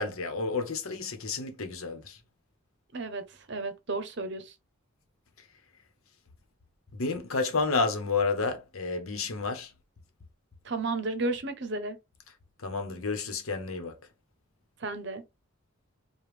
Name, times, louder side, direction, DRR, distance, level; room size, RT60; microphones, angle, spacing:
voice 1, 0.0-2.2 6.9-9.7 12.6-14.0, left 4 dB, 80° left, 1.0 m, -30 dB
voice 2, 2.9-4.5 10.6-12.0 14.8-15.2, right 2 dB, 55° right, 0.7 m, -33 dB
5.0 x 2.3 x 3.2 m
head